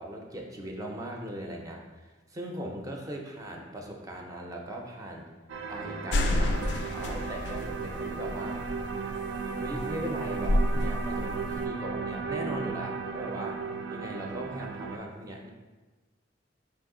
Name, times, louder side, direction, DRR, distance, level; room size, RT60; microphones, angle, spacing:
voice 1, 0.0-5.3 5.7-8.6 9.5-13.6 13.9-15.5, right 1 dB, 20° right, 0 dB, 0.4 m, -39 dB
sound 1, 5.5-15.0, right 5 dB, 80° right, 0.4 m, -35 dB
sound 2, 6.1-11.6, left 1 dB, 65° left, 0.3 m, -30 dB
4.9 x 2.6 x 3.7 m, 1.3 s
head